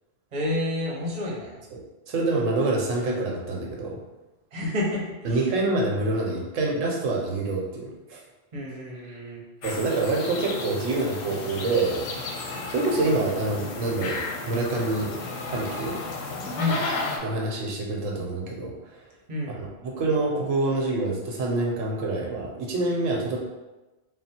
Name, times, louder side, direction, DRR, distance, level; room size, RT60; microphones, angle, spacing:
voice 1, 0.3-1.5 4.5-5.4 8.5-9.4 16.5-16.8 19.3-19.5, left 2 dB, 35° right, -3 dB, 0.9 m, -29 dB
voice 2, 2.1-4.0 5.2-8.2 9.1-9.2 9.6-12.1 12.7-15.1 15.5-16.0 17.2-19.0 19.6-23.4, right 2 dB, 85° right, -1 dB, 1.1 m, -26 dB
sound 1, 9.6-17.2, left 3 dB, 80° left, 1.0 m, -33 dB
3.5 x 2.3 x 4.2 m, 1.1 s
omnidirectional pair, 1.3 m